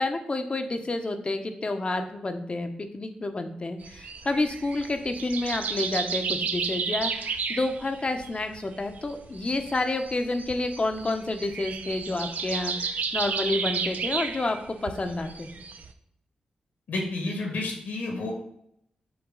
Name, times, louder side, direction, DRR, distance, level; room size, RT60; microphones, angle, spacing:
voice 1, 0.0-15.5, left 2 dB, 40° left, 7 dB, 0.8 m, -29 dB
sound 1, 3.8-15.9, right 5 dB, 70° right, 0.4 m, -33 dB
voice 2, 16.9-18.3, left 2 dB, 85° left, 0 dB, 1.7 m, -30 dB
7.9 x 3.2 x 3.8 m, 0.73 s
cardioid pair, 50°, 3 cm